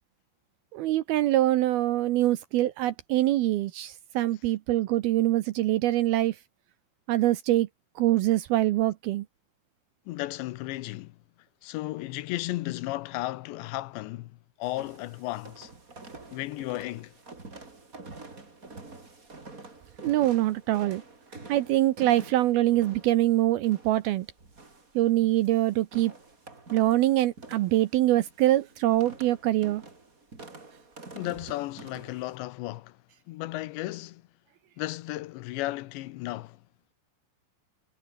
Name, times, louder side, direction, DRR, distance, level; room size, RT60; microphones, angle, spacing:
voice 1, 0.7-6.4 7.1-7.7 8.0-9.3 20.0-21.0 21.5-24.3 25.0-26.1 26.7-29.8, right 15 dB, 75° right, 2.4 m, -24 dB
voice 2, 10.1-11.2 11.6-14.3 14.6-15.7 16.3-17.1 31.1-33.0 33.3-34.2 34.8-36.6, left 17 dB, 80° left, 3.1 m, -34 dB
sound 1, 14.6-32.4, right 3 dB, 20° right, 3.6 m, -48 dB
omnidirectional pair, 5.2 m